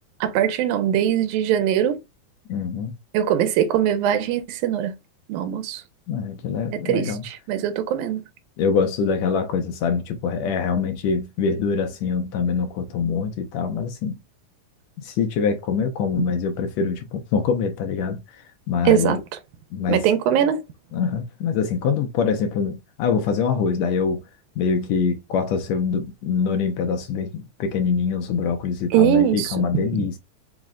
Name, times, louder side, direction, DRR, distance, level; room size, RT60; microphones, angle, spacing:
voice 1, 0.2-2.0 3.1-4.9 5.3-5.8 6.9-8.2 16.2-16.3 18.9-19.2 19.9-20.6 28.9-30.0, right 10 dB, 85° right, 2.1 m, -21 dB
voice 2, 2.5-2.9 6.1-7.2 8.6-14.2 15.0-18.2 18.7-19.2 19.7-20.1 20.9-24.2 24.6-30.2, left 6 dB, 75° left, 1.6 m, -24 dB
5.0 x 2.1 x 3.6 m
omnidirectional pair, 3.4 m